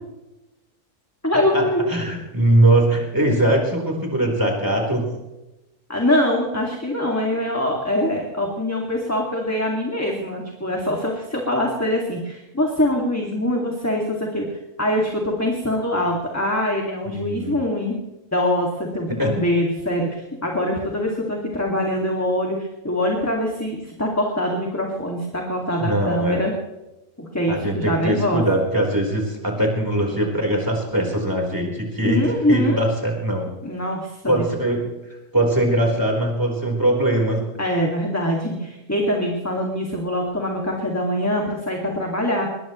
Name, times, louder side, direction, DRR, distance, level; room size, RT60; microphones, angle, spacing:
voice 1, 1.2-1.8 5.9-14.5 14.8-18.0 18.3-18.7 18.9-20.1 20.4-26.5 27.3-28.4 32.0-32.8 33.6-34.4 37.6-42.5, left 1 dB, 10° left, -1 dB, 2.2 m, -23 dB
voice 2, 1.9-5.0 17.1-17.6 19.2-19.3 25.8-26.4 27.5-33.5 34.3-34.8 35.3-37.4, right 1 dB, 15° right, 0 dB, 4.2 m, -21 dB
22.0 x 21.0 x 3.2 m, 1.0 s
omnidirectional pair, 1.4 m